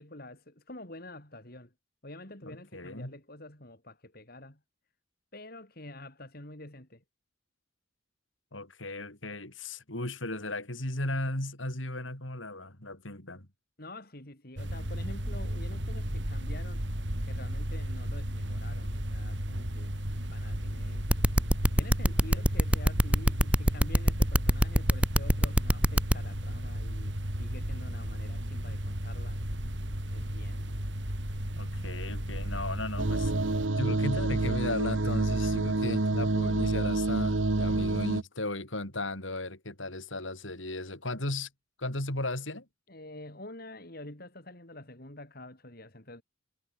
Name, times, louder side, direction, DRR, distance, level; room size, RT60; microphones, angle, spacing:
voice 1, 0.0-1.7 2.0-4.6 5.3-7.0 13.8-16.9 17.2-20.0 20.3-21.1 21.7-29.4 30.1-30.6 42.9-46.2, left 1 dB, 50° left, 4.6 m, -47 dB
voice 2, 2.4-3.2 8.5-13.5 31.6-33.3 33.8-41.5 41.8-42.7, left 2 dB, 85° left, 7.3 m, -36 dB
sound 1, 14.6-33.7, equal, 65° right, 5.7 m, -34 dB
sound 2, 21.1-26.1, equal, 5° right, 1.5 m, -22 dB
sound 3, 33.0-38.2, right 2 dB, 85° right, 1.2 m, -28 dB
head